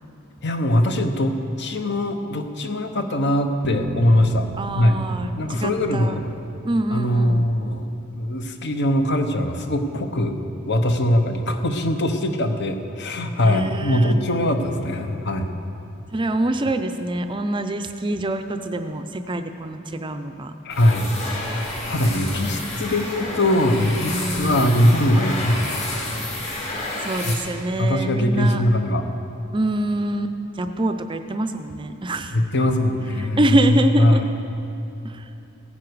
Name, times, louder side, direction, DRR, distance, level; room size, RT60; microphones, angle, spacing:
voice 1, 0.4-4.5 4.8-5.0 5.3-6.2 6.9-7.9 8.1-10.4 10.7-15.5 20.6-21.1 21.9-25.8 27.2-27.4 27.8-29.0 32.3-34.3, left 1 dB, 55° left, 6 dB, 1.0 m, -21 dB
Bass guitar, 3.6-7.7, right 3 dB, 75° right, 0.5 m, -36 dB
voice 2, 4.6-6.2 6.6-7.5 13.4-14.1 16.1-20.5 22.4-22.6 23.7-25.0 27.0-28.6 29.5-32.3 33.2-34.2 35.0-35.2, right 1 dB, 25° right, 8 dB, 0.5 m, -25 dB
sound 1, 20.7-27.8, left 1 dB, 35° left, 3.4 m, -30 dB
16.0 x 9.8 x 4.7 m, 2.8 s
head